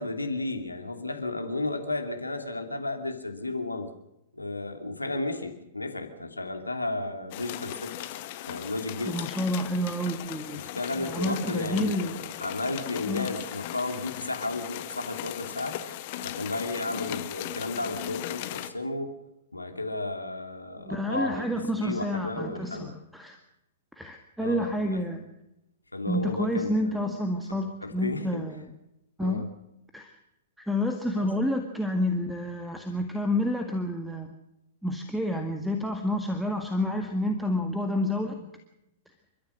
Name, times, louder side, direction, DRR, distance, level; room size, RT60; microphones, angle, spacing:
voice 1, 0.0-3.9 4.3-8.0 8.5-9.2 10.5-15.8 16.2-19.2 19.5-22.9 24.4-25.0 25.9-27.0 27.8-28.5 29.2-29.4 31.2-31.3, left 2 dB, 85° left, 6 dB, 2.8 m, -33 dB
sound 1, 7.3-18.7, left 14 dB, 45° left, 1.9 m, -38 dB
voice 2, 9.1-10.6 11.0-12.1 13.1-13.3 20.8-23.4 24.0-25.3 26.1-28.7 29.2-29.4 29.9-30.2 30.6-34.3 34.8-38.5, left 1 dB, ahead, 5 dB, 1.8 m, -29 dB
29.5 x 14.0 x 6.4 m, 0.89 s
figure-of-eight pair, 105°, 0 cm